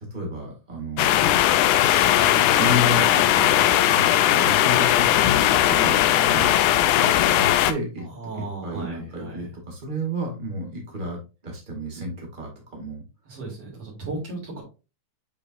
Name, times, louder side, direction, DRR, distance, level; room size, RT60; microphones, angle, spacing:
voice 1, 0.1-1.3 2.5-5.1 5.6-6.5 7.0-8.1 8.4-13.0, equal, 20° right, 0 dB, 2.0 m, -32 dB
sound 1, 1.0-7.7, left 12 dB, 85° left, 2.0 m, -18 dB
voice 2, 2.1-2.6 8.0-9.5 13.2-14.6, right 3 dB, 50° right, -4 dB, 3.3 m, -36 dB
7.2 x 5.2 x 2.6 m, 0.29 s
omnidirectional pair, 3.5 m